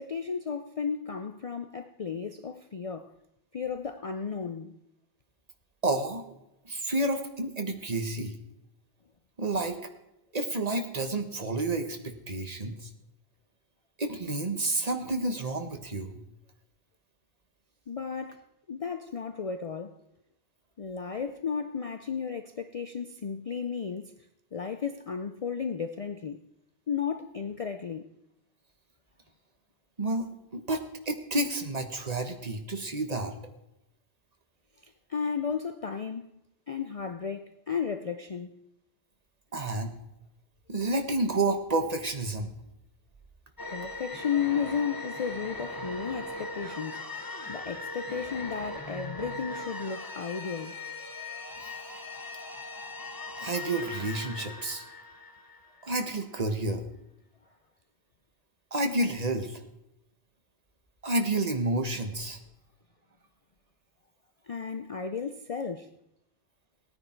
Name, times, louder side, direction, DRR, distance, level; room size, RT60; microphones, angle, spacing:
voice 1, 0.0-3.1 3.5-4.7 17.9-18.4 18.7-20.0 20.8-24.1 24.5-26.4 26.9-28.1 35.1-36.3 36.7-38.6 43.7-47.1 47.5-50.7 64.5-65.9, left 6 dB, 45° left, 0.5 m, -34 dB
voice 2, 5.8-6.2 6.6-8.3 9.4-9.8 10.3-12.9 14.0-16.2 30.0-33.3 39.5-39.9 40.7-42.5 51.6-51.7 53.4-54.8 55.8-56.8 58.7-59.6 61.0-62.4, right 2 dB, 40° right, 1.5 m, -30 dB
sound 1, 43.6-56.1, left 2 dB, 20° left, 1.0 m, -39 dB
18.0 x 9.6 x 4.5 m
omnidirectional pair, 1.1 m